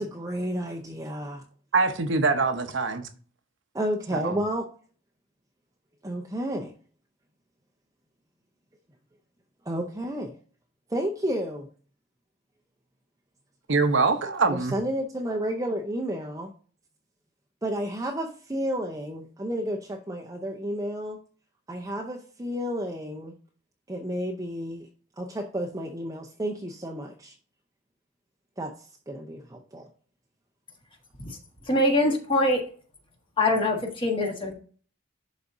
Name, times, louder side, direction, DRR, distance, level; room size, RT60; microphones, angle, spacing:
voice 1, 0.0-1.4 3.7-4.7 6.0-6.7 9.7-10.3 10.9-11.7 14.5-16.5 17.6-21.2 21.7-23.3 23.9-24.9 25.2-27.3 28.6-29.9, equal, 15° right, 0.6 m, -31 dB
voice 2, 1.7-3.1 4.1-4.3 13.7-14.7, right 4 dB, 60° right, 0.8 m, -24 dB
voice 3, 31.7-32.6 33.4-34.5, left 1 dB, 25° left, 1.5 m, -23 dB
11.5 x 4.1 x 2.6 m
head